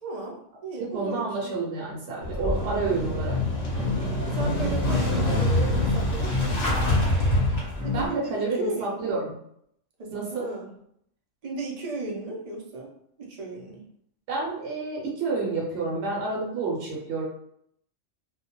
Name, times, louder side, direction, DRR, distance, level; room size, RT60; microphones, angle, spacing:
voice 1, 0.0-1.5 2.4-2.8 4.3-6.8 7.8-9.1 10.0-10.7 11.4-12.9 13.2-13.8, right 2 dB, 50° right, -2 dB, 0.5 m, -35 dB
voice 2, 0.9-3.4 7.9-9.3 10.1-10.5 14.3-17.2, right 3 dB, 65° right, -4 dB, 0.9 m, -29 dB
Motorcycle / Engine starting, 2.2-8.1, equal, 40° left, 0.8 m, -25 dB
sound 1, 3.2-8.1, left 7 dB, 5° left, 0.5 m, -30 dB
2.2 x 2.1 x 2.8 m, 0.72 s
omnidirectional pair, 1.3 m